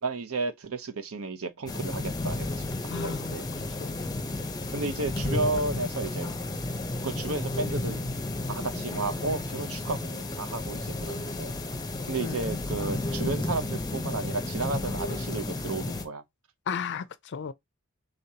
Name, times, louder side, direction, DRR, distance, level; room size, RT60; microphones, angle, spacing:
voice 1, 0.0-2.7 3.0-3.7 4.7-6.3 7.0-8.0 8.5-11.5 12.1-16.2, right 3 dB, 65° right, 0.8 m, -33 dB
sound 1, 1.7-16.0, left 2 dB, 15° left, 0.7 m, -32 dB
voice 2, 2.9-4.0 12.2-12.4 16.7-17.5, left 6 dB, 55° left, 0.5 m, -35 dB
5.1 x 3.7 x 2.8 m
head